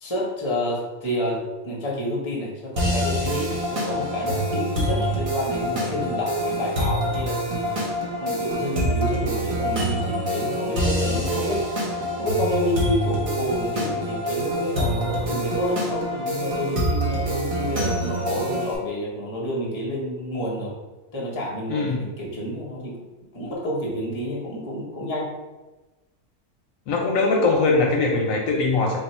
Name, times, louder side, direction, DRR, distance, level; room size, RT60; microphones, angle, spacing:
voice 1, 0.0-7.7 8.2-11.7 12.2-20.7 21.1-23.0 23.3-25.3, left 1 dB, 30° left, -3 dB, 0.6 m, -29 dB
sound 1, 2.8-18.8, equal, 50° right, 0.4 m, -26 dB
voice 2, 21.7-22.0 26.9-29.0, left 3 dB, 70° left, 0 dB, 0.9 m, -21 dB
3.5 x 2.4 x 4.2 m, 1.2 s
omnidirectional pair, 1.6 m